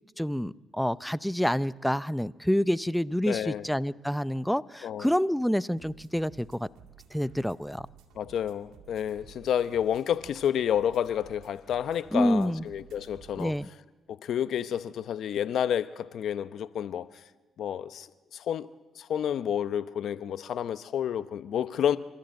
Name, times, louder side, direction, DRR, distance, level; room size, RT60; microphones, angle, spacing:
voice 1, 0.2-6.7 7.1-7.9 12.1-12.6 13.4-13.7, equal, 5° left, 0.6 m, -28 dB
voice 2, 3.3-3.7 4.8-5.1 8.2-13.5 14.1-17.1 17.6-18.1 18.3-18.7 19.0-22.0, left 9 dB, 70° left, 0.8 m, -30 dB
sound 1, 5.8-13.6, right 8 dB, 80° right, 2.1 m, -54 dB
29.0 x 13.0 x 7.8 m
supercardioid pair, 75°, 0 cm